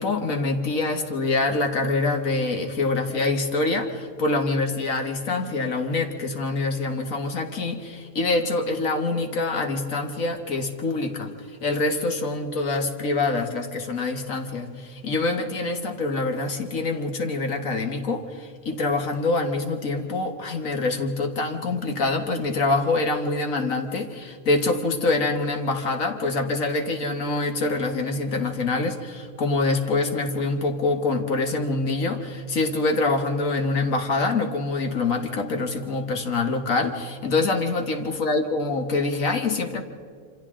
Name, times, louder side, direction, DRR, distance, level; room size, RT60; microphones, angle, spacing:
voice 1, 0.0-11.3 11.6-39.8, left 3 dB, 65° left, 4 dB, 1.7 m, -25 dB
27.0 x 26.0 x 3.7 m, 2.2 s
omnidirectional pair, 1.5 m